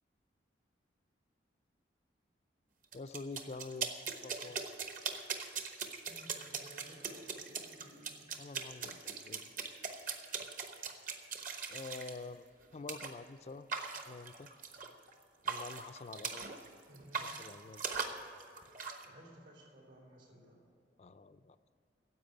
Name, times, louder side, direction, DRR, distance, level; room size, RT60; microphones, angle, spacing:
voice 1, 2.9-3.9 4.2-4.7 8.4-9.4 11.7-12.4 12.7-13.7 14.1-14.5 15.4-16.5 17.2-17.8 21.0-21.6, left 3 dB, 35° left, 13 dB, 0.4 m, -47 dB
sound 1, 2.9-12.2 12.9-13.1 13.7-15.1 15.4-16.7 16.9-19.0, right 5 dB, 45° right, 1.0 m, -40 dB
voice 2, 6.1-8.3 16.8-17.3 18.7-20.6, equal, 80° right, -1 dB, 3.9 m, -57 dB
10.5 x 8.0 x 9.7 m, 2.6 s
head